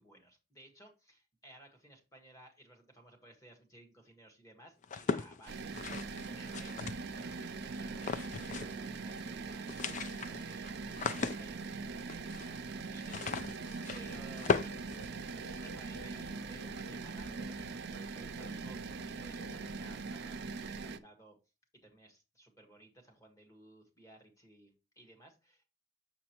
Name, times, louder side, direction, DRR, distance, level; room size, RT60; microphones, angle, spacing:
voice 1, 0.0-5.8 6.2-18.8 19.1-21.4 21.8-25.7, right 1 dB, 15° left, 2 dB, 1.6 m, -58 dB
sound 1, 4.8-7.3 7.9-8.9 9.1-9.2 9.5-15.7, left 5 dB, 40° left, 0.4 m, -38 dB
sound 2, 5.5-21.0, right 4 dB, 55° right, 0.5 m, -42 dB
sound 3, 13.6-20.1, equal, 90° left, 4.4 m, -54 dB
6.6 x 6.3 x 3.0 m, 0.29 s
head